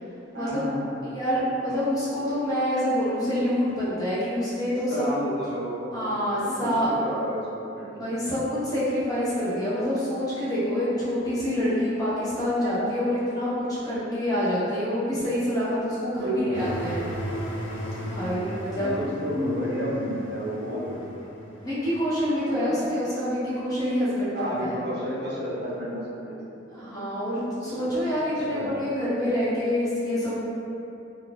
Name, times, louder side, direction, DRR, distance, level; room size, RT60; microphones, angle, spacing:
voice 1, 0.3-1.0 4.9-8.2 16.2-17.1 18.8-21.3 22.7-22.8 24.3-26.4 27.8-28.7, equal, 60° right, -5 dB, 0.6 m, -31 dB
voice 2, 1.1-5.1 5.9-6.9 8.0-17.0 18.0-18.9 21.6-24.8 26.7-30.4, equal, 20° left, -12 dB, 0.8 m, -27 dB
sound 1, 16.5-22.0, right 1 dB, 80° left, 0.6 m, -35 dB
3.7 x 2.4 x 2.4 m, 2.8 s
head